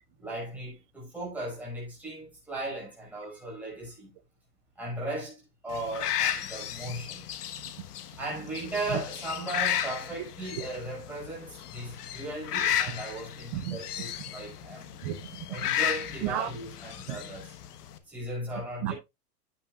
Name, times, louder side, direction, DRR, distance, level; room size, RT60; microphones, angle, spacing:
voice 1, 0.2-4.1 4.8-7.3 8.2-14.9 15.5-17.5 18.1-18.9, right 1 dB, 5° right, 5.8 m, -37 dB
sound 1, 5.7-18.0, left 10 dB, 70° left, 1.4 m, -34 dB
voice 2, 15.0-15.5 16.2-16.5 17.1-17.2 18.8-18.9, right 13 dB, 20° right, 0.4 m, -32 dB
9.5 x 9.4 x 2.3 m
hypercardioid pair, 150°, 47 cm